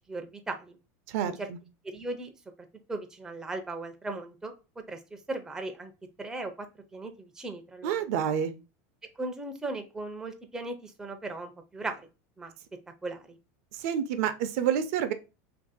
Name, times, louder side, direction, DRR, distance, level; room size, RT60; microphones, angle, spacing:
voice 1, 0.1-0.8 1.2-1.5 1.8-2.3 2.9-4.5 4.9-5.9 6.2-6.7 6.9-7.9 9.2-12.0 12.4-12.5 13.0-13.3, right 2 dB, 5° right, 5 dB, 0.4 m, -37 dB
voice 2, 1.1-1.6 7.8-8.5 13.7-15.1, right 9 dB, 65° right, 10 dB, 0.5 m, -28 dB
2.9 x 2.6 x 3.8 m, 0.30 s
supercardioid pair, 145°, 9 cm